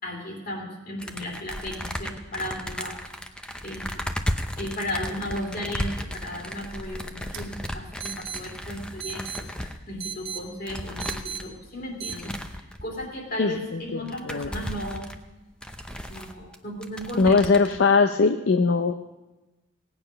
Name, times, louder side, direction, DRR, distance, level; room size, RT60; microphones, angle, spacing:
voice 1, 0.0-3.0 3.6-4.0 4.6-15.0 16.1-17.4, left 1 dB, 45° left, 0 dB, 2.7 m, -35 dB
sound 1, 1.0-9.8 10.3-10.4 10.7-11.5 12.1-13.1 13.6-13.7 13.9-16.6 16.8-17.8, equal, 5° left, 0.6 m, -35 dB
sound 2, 5.9-12.2, right 8 dB, 80° right, 1.1 m, -40 dB
voice 2, 13.4-14.5 17.2-18.9, left 4 dB, 65° left, 8 dB, 0.5 m, -21 dB
17.5 x 9.0 x 5.5 m, 1.1 s
head